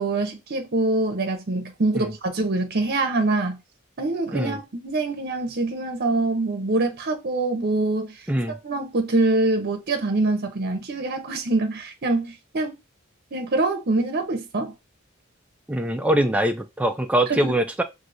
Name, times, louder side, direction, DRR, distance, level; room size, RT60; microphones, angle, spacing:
voice 1, 0.0-3.6 4.0-8.2 8.5-12.8 13.3-14.7 17.3-17.6, right 2 dB, 50° right, 0.7 m, -24 dB
voice 2, 8.3-8.6 15.7-17.8, right 1 dB, 5° right, 0.4 m, -23 dB
6.1 x 2.7 x 2.6 m
head